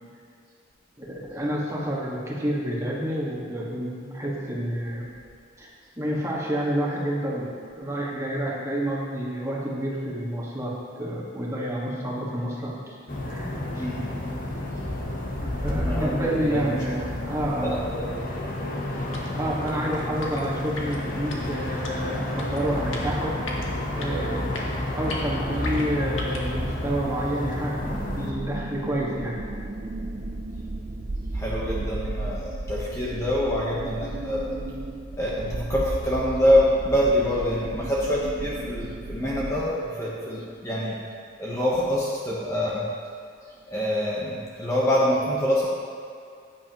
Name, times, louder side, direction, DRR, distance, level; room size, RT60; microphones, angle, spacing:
voice 1, 1.0-5.1 5.6-5.7 6.0-13.0 13.3-13.9 15.4-17.8 19.3-23.4 23.9-24.7 24.9-29.4, right 1 dB, 15° right, -5 dB, 1.8 m, -29 dB
sound 1, 13.1-28.3, left 1 dB, 45° left, 1.3 m, -30 dB
voice 2, 15.8-16.8 17.6-18.0 31.3-34.5 35.2-41.0 41.4-42.9 43.7-45.7, equal, 15° left, -6 dB, 1.1 m, -25 dB
sound 2, 19.1-26.5, left 2 dB, 80° left, 1.6 m, -39 dB
sound 3, 27.8-39.6, right 2 dB, 40° right, 0.6 m, -34 dB
14.5 x 9.8 x 3.1 m, 2.3 s
head